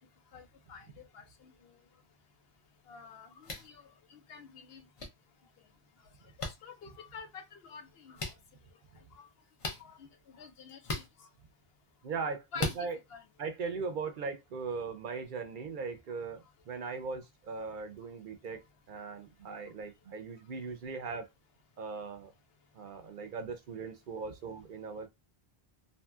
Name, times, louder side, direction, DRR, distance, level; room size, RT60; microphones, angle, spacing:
voice 1, 0.3-1.8 2.9-4.8 6.4-8.2 9.2-9.3 9.8-11.3 12.5-12.8 13.1-13.2, left 5 dB, 75° left, 0.9 m, -49 dB
sound 1, 3.4-3.7 5.0-5.1 6.4-6.5 8.1-8.3 9.6-9.8 10.8-11.1 12.5-12.8, left 2 dB, 40° left, 0.6 m, -35 dB
voice 2, 12.0-13.0 13.4-18.6 18.9-21.3 21.8-22.3 22.7-25.1, right 4 dB, 60° right, 0.7 m, -39 dB
2.7 x 2.6 x 2.3 m
omnidirectional pair, 1.0 m